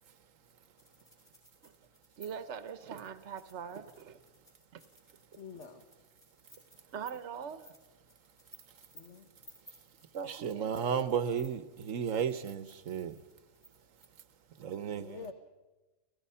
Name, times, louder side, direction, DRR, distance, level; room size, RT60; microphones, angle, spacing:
sound 1, 0.8-14.4, equal, 20° left, 6.5 m, -60 dB
voice 1, 2.2-4.2 4.7-4.8 6.9-7.7 10.1-11.1, right 7 dB, 65° right, 12 dB, 1.3 m, -42 dB
voice 2, 5.4-5.8 8.9-9.3 14.9-15.3, left 6 dB, 65° left, 7 dB, 1.5 m, -47 dB
voice 3, 10.3-13.2 14.6-15.2, right 7 dB, 85° right, 13 dB, 1.4 m, -33 dB
29.5 x 17.0 x 5.6 m, 1.1 s
omnidirectional pair, 1.3 m